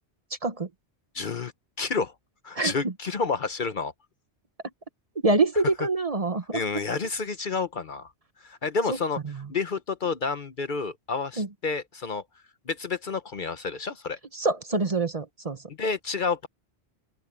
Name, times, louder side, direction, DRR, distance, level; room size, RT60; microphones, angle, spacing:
voice 1, 1.1-1.5 1.8-2.1 2.4-3.9 6.5-8.1 8.4-9.2 9.5-12.2 12.7-14.2 15.8-16.5, left 4 dB, 50° left, 0.9 m, -29 dB
voice 2, 5.2-6.6 8.9-9.0 11.4-11.5 14.4-15.6, right 3 dB, 35° right, 1.0 m, -25 dB
open air
omnidirectional pair, 1.2 m